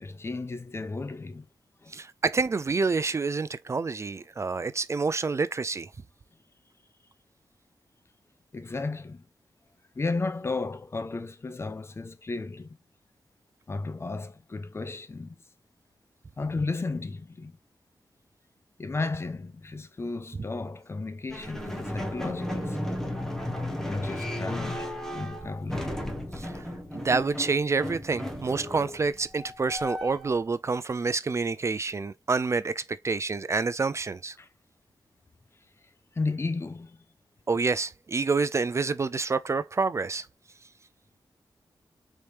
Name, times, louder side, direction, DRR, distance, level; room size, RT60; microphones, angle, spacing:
voice 1, 0.0-1.5 1.8-2.0 8.5-9.2 10.0-12.8 13.7-15.4 16.4-17.6 18.8-23.1 23.9-25.9 34.4-34.5 36.1-37.0, left 3 dB, 30° left, 0.5 m, -34 dB
voice 2, 1.9-5.9 26.3-26.6 26.9-34.4 37.5-40.3, right 4 dB, 35° right, 0.3 m, -28 dB
sound 1, 21.3-30.4, left 1 dB, 5° left, 1.0 m, -35 dB
4.1 x 3.3 x 3.2 m
wide cardioid pair, 120°, 8 cm